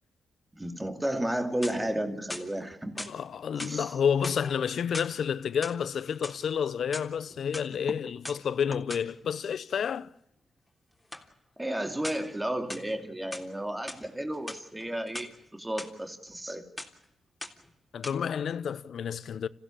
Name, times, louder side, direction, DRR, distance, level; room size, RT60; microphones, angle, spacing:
voice 1, 0.6-3.1 3.6-3.9 11.6-16.7, right 1 dB, 15° right, 2.7 m, -33 dB
sound 1, 1.4-2.0 2.3-3.2 3.6-3.8 4.2-5.2 5.5-6.4 6.8-7.7 8.2-8.4 8.9-9.1 11.1-11.3 12.0-12.3 12.7-13.5 13.9-14.0 14.3-15.3 15.8-15.9 16.3-16.5 16.8-17.0 17.4-17.7 18.0-18.1, left 1 dB, 15° left, 3.4 m, -41 dB
voice 2, 3.1-10.1 17.9-19.5, left 7 dB, 70° left, 0.8 m, -30 dB
26.5 x 16.0 x 8.7 m
supercardioid pair, 55°, 0 cm